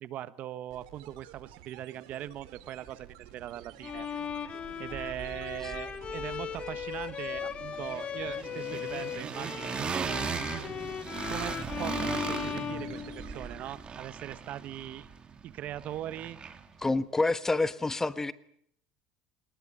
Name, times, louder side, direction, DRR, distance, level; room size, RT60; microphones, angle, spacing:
voice 1, 0.0-4.1 4.8-10.2 11.3-15.1 15.4-16.4, right 12 dB, 55° right, 15 dB, 1.3 m, -40 dB
sound 1, 0.7-13.9, right 12 dB, 80° right, 3.4 m, -53 dB
sound 2, 2.8-2.9 3.2-4.4 4.6-16.8, right 6 dB, 30° right, 2.8 m, -39 dB
Bowed string instrument, 3.8-13.6, left 8 dB, 35° left, 2.0 m, -38 dB
voice 2, 16.8-18.3, left 3 dB, 15° left, 14 dB, 1.3 m, -27 dB
23.0 x 20.0 x 9.9 m, 0.69 s
supercardioid pair, 100°, 3 cm